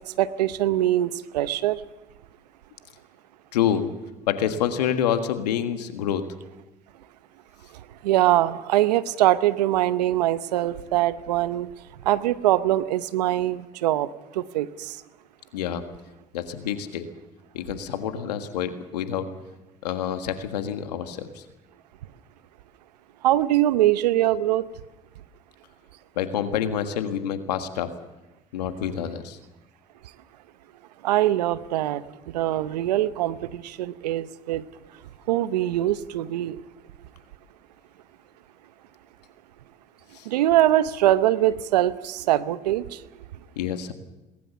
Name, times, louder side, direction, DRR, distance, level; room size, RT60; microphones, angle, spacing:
voice 1, 0.2-1.8 8.0-11.7 12.1-14.1 14.4-14.7 23.2-24.6 31.0-32.0 32.3-34.6 35.3-36.6 40.3-42.8, right 14 dB, 85° right, 15 dB, 0.8 m, -22 dB
voice 2, 3.5-3.9 4.3-6.2 15.5-15.8 16.3-17.1 17.5-19.3 19.8-21.4 26.2-27.9 28.5-29.4 40.1-40.2 43.5-43.9, left 9 dB, 90° left, 8 dB, 1.6 m, -27 dB
22.0 x 19.5 x 7.0 m, 1.1 s
hypercardioid pair, 60°, 20 cm